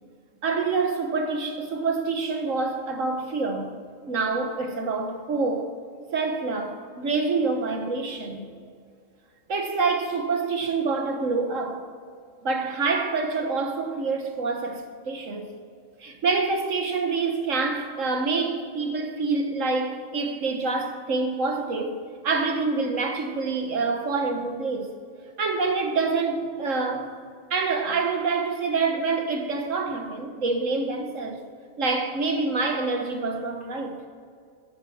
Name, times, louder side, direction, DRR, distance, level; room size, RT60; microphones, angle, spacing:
voice 1, 0.4-3.7 4.1-5.7 6.1-8.5 9.5-11.8 12.4-15.5 16.0-22.0 22.2-24.9 25.4-27.1 27.5-31.4 31.8-34.0, right 4 dB, 65° right, 1.7 m, -26 dB
15.5 x 8.4 x 6.1 m
omnidirectional pair, 1.4 m